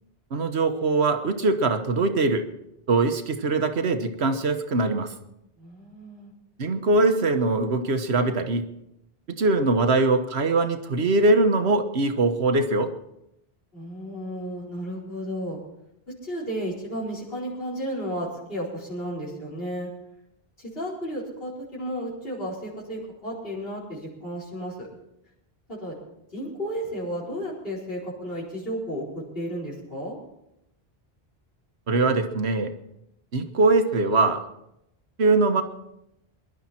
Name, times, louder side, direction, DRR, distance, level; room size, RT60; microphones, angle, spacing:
voice 1, 0.3-2.4 2.9-5.1 6.6-8.6 9.3-12.9 31.9-32.7 33.3-34.4 35.2-35.6, right 3 dB, 85° right, 7 dB, 1.4 m, -22 dB
voice 2, 5.6-6.3 13.7-15.6 16.2-19.9 20.6-24.9 25.7-25.9 26.3-30.2, equal, 65° left, -4 dB, 4.8 m, -33 dB
22.5 x 11.5 x 4.3 m, 0.82 s
omnidirectional pair, 1.1 m